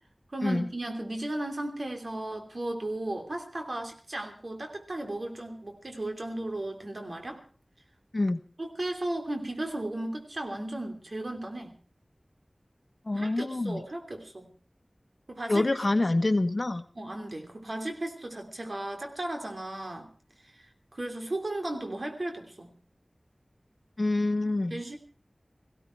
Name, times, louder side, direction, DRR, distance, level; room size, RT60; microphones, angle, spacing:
voice 1, 0.3-7.4 8.6-11.8 13.1-14.5 15.3-15.6 16.0-16.1 16.9-20.1 20.5-22.7 24.7-25.0, right 1 dB, 65° right, 4 dB, 3.1 m, -35 dB
voice 2, 13.1-13.8 15.5-16.8 24.0-24.8, left 2 dB, 55° left, 11 dB, 1.1 m, -26 dB
18.5 x 16.0 x 4.5 m, 0.41 s
wide cardioid pair, 45°, 0 cm